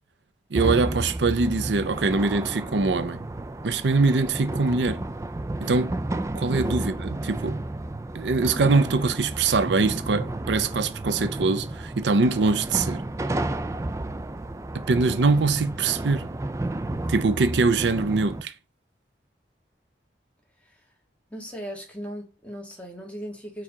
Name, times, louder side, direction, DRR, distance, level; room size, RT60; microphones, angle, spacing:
sound 1, 0.5-18.4, right 2 dB, 15° right, 0.3 m, -32 dB
voice 1, 0.5-3.2 3.6-5.0 5.6-6.0 6.3-7.6 8.1-13.0 14.7-16.3 17.1-18.5, right 3 dB, 80° right, 0.6 m, -23 dB
voice 2, 21.3-23.6, equal, 5° left, 1.8 m, -37 dB
4.8 x 4.6 x 4.8 m
head